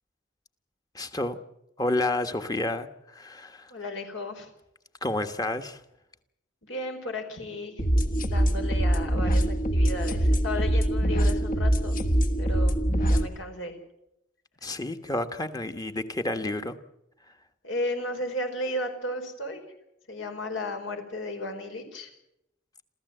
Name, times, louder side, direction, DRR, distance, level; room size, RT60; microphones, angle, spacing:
voice 1, 0.9-1.4 1.8-3.7 5.0-5.8 14.6-16.8, left 2 dB, 20° left, 8 dB, 1.4 m, -30 dB
voice 2, 3.7-4.5 6.6-7.8 8.2-12.0 12.4-12.8 13.0-13.7 17.6-19.6 20.1-22.1, left 1 dB, 75° left, 5 dB, 4.8 m, -34 dB
sound 1, 7.8-13.3, right 1 dB, 45° left, 1.5 m, -23 dB
28.0 x 14.5 x 7.9 m, 0.84 s
head